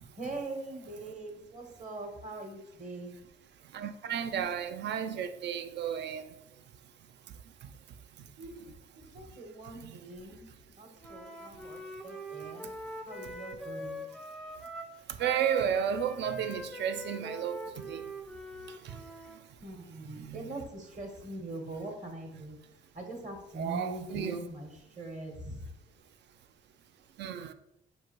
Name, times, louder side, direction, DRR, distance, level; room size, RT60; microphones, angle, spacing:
voice 1, 0.2-3.2 8.4-8.7 9.0-10.5 10.7-12.7 13.0-14.1 19.6-22.6 22.9-25.7, right 2 dB, 40° right, 1.2 m, -42 dB
voice 2, 3.7-6.3 9.8-10.0 15.2-18.0 18.8-19.0 20.1-20.4 23.6-24.4 27.2-27.5, right 8 dB, 60° right, 0.4 m, -33 dB
Wind instrument woodwind instrument, 11.0-19.4, equal, 5° left, 0.4 m, -43 dB
6.1 x 2.6 x 3.0 m
cardioid pair, 90°, 20 cm